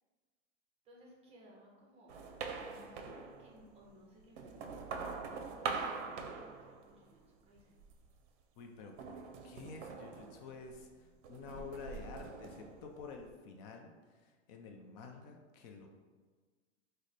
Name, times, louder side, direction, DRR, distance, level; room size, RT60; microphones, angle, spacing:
voice 1, 0.8-2.2 2.6-7.8 11.0-11.1, equal, 15° right, -2 dB, 0.7 m, -60 dB
sound 1, 2.1-3.7 4.2-7.2 7.6-8.2 9.0-10.9 11.2-13.3, right 5 dB, 65° right, 0.6 m, -44 dB
voice 2, 8.6-10.9 11.3-13.9 14.2-15.9, left 4 dB, 40° left, 3 dB, 0.4 m, -49 dB
3.2 x 2.1 x 3.9 m, 1.4 s
hypercardioid pair, 130°, 35 cm